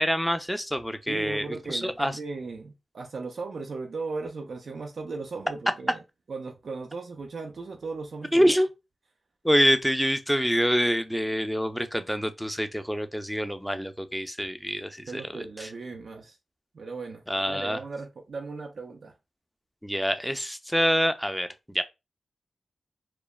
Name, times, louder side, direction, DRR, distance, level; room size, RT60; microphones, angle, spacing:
voice 1, 0.0-2.1 8.3-8.7 9.4-15.7 17.3-17.8 19.8-21.8, equal, ahead, 0.4 m, -26 dB
voice 2, 1.1-6.0 6.3-8.5 15.1-16.4 16.7-19.1, right 4 dB, 75° right, 0.3 m, -37 dB
3.0 x 2.1 x 2.3 m
cardioid pair, 55°, 0 cm